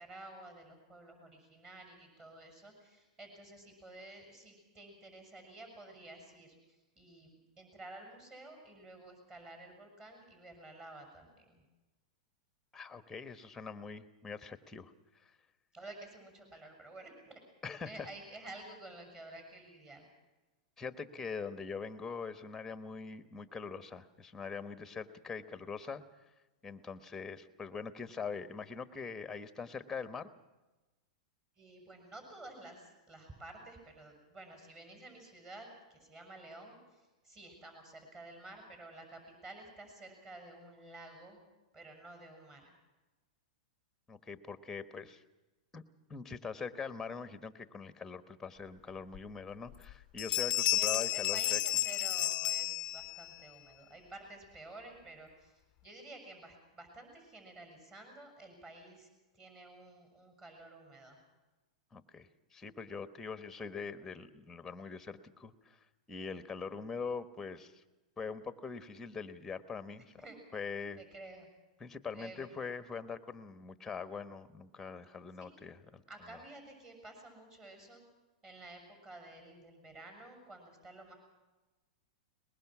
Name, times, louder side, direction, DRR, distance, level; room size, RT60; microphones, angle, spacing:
voice 1, 0.0-11.6 15.7-17.4 17.8-20.1 31.6-41.4 41.7-42.7 50.5-61.2 70.2-70.4 71.0-71.5 72.1-72.5 75.4-75.6 76.1-78.0 78.4-81.2, right 2 dB, 20° right, 4 dB, 6.5 m, -52 dB
voice 2, 12.7-15.3 17.6-17.9 20.8-26.0 26.6-30.3 44.1-45.2 45.7-45.8 46.1-51.6 61.9-67.8 68.2-70.1 70.5-71.0 71.8-76.0 76.3-76.4, left 5 dB, 10° left, 12 dB, 1.2 m, -43 dB
sound 1, 49.1-49.2 49.7-49.9 50.2-53.3, left 16 dB, 30° left, 0.7 m, -32 dB
22.5 x 20.5 x 6.1 m, 1.1 s
hypercardioid pair, 140°, 4 cm